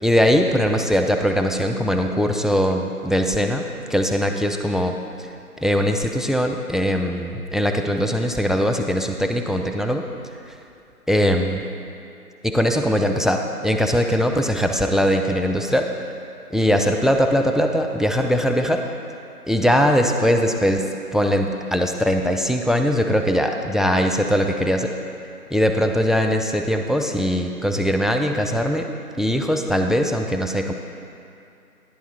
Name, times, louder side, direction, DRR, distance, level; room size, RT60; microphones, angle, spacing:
voice 1, 0.0-3.6 3.9-5.3 5.6-10.0 11.1-11.6 12.4-15.9 16.5-18.8 19.5-24.9 25.5-28.9 29.2-30.7, equal, ahead, 4 dB, 0.4 m, -21 dB
10.5 x 6.7 x 4.3 m, 2.5 s
figure-of-eight pair, 175°, 47 cm